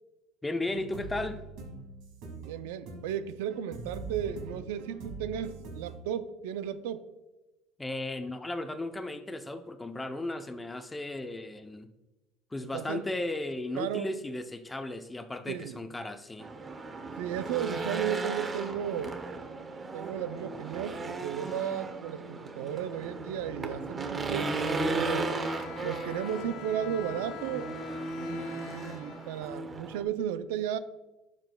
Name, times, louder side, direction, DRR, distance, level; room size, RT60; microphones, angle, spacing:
voice 1, 0.4-1.4 7.8-11.9 12.5-16.5, left 2 dB, 15° left, 9 dB, 0.6 m, -35 dB
sound 1, 0.7-6.0, right 3 dB, 70° right, 2.0 m, -43 dB
voice 2, 2.4-7.1 12.6-13.1 13.8-14.1 15.5-15.8 17.2-19.2 19.9-25.4 25.8-27.7 28.2-30.8, right 9 dB, 90° right, 13 dB, 0.4 m, -34 dB
Race car auto racing / Engine, 16.4-30.0, right 2 dB, 25° right, 0.8 m, -36 dB
Bowed string instrument, 24.9-30.0, left 15 dB, 65° left, 0.3 m, -46 dB
10.5 x 6.0 x 2.3 m, 1.0 s
supercardioid pair, 105°, 0 cm